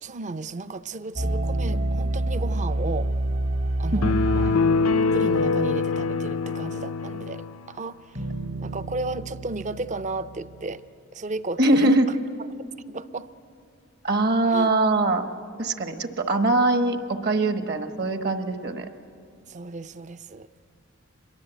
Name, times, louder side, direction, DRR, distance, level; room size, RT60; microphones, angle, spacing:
voice 1, 0.0-3.1 3.8-4.5 5.1-8.0 8.6-10.8 11.1-12.0 12.6-13.3 14.5-14.7 19.5-20.5, right 3 dB, 35° right, 13 dB, 0.5 m, -34 dB
sound 1, 1.2-7.3 8.2-10.7, right 1 dB, 75° right, 3.9 m, -29 dB
sound 2, 4.0-7.6, left 4 dB, 90° left, 0.6 m, -23 dB
voice 2, 11.6-12.1 14.0-15.2 15.6-18.9, right 2 dB, 50° right, 8 dB, 1.3 m, -22 dB
25.0 x 22.0 x 8.1 m, 2.4 s
head